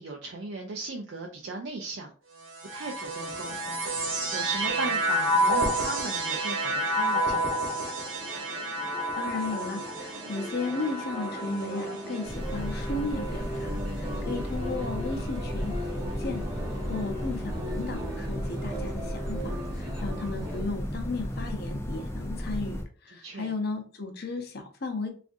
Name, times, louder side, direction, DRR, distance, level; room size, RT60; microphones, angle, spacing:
voice 1, 0.0-2.1 2.7-3.9 4.3-7.8 23.1-23.5, right 3 dB, 55° right, 1 dB, 0.4 m, -37 dB
sound 1, 2.4-13.9 14.7-15.4, right 1 dB, 75° right, 0.9 m, -30 dB
sound 2, 3.1-20.6, equal, 20° right, 0.7 m, -40 dB
voice 2, 9.2-25.1, left 3 dB, 50° left, 4 dB, 0.7 m, -35 dB
sound 3, 12.2-22.8, equal, 10° left, 0.4 m, -34 dB
3.4 x 2.5 x 2.5 m, 0.39 s
head